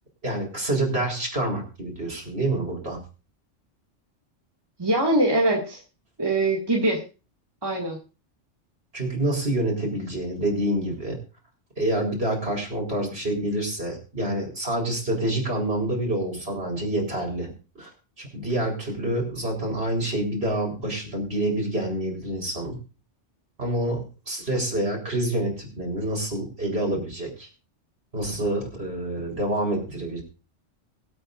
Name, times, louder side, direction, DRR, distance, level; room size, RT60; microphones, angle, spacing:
voice 1, 0.2-3.0 8.9-11.2 11.8-17.9 18.2-22.8 23.6-27.5 28.1-30.2, right 1 dB, 55° right, -1 dB, 4.7 m, -27 dB
voice 2, 4.8-5.8 6.2-7.0 7.6-8.0, right 1 dB, 20° right, -1 dB, 2.3 m, -22 dB
23.5 x 8.5 x 2.6 m, 0.32 s
omnidirectional pair, 1.2 m